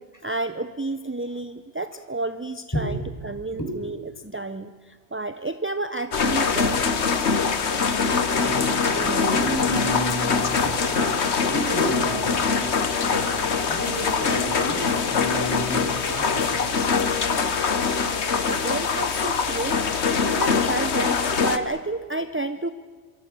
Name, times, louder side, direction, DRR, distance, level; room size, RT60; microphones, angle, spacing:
voice 1, 0.0-7.0 18.5-19.8 20.3-22.7, right 2 dB, 15° right, 10 dB, 0.5 m, -31 dB
voice 2, 2.7-3.1 3.6-3.7 8.2-17.2, equal, 15° left, 1 dB, 6.1 m, -31 dB
sound 1, 6.1-21.6, left 5 dB, 65° left, 1.6 m, -23 dB
26.5 x 23.5 x 6.9 m, 1.5 s
omnidirectional pair, 1.3 m